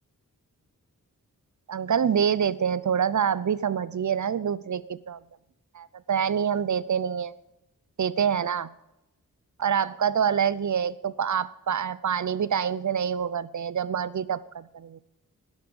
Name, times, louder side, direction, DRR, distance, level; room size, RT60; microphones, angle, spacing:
voice 1, 1.7-5.2 5.7-7.3 8.0-8.7 9.6-15.0, right 8 dB, 55° right, 18 dB, 0.7 m, -26 dB
11.5 x 10.5 x 5.4 m, 0.91 s
wide cardioid pair, 80°, 34 cm